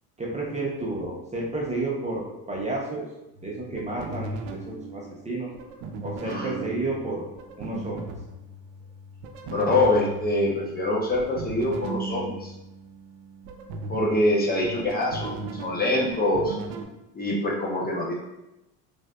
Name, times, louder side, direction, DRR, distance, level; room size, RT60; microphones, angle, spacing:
voice 1, 0.2-3.0 3.4-5.5 6.0-7.2 7.6-8.0, right 2 dB, 15° right, -4 dB, 0.6 m, -31 dB
sound 1, 3.4-16.8, right 3 dB, 80° right, 0.5 m, -38 dB
voice 2, 9.5-12.5 13.9-16.6 17.1-18.1, left 1 dB, 20° left, -3 dB, 0.7 m, -24 dB
3.2 x 2.5 x 2.2 m, 0.93 s
hypercardioid pair, 75°, 43 cm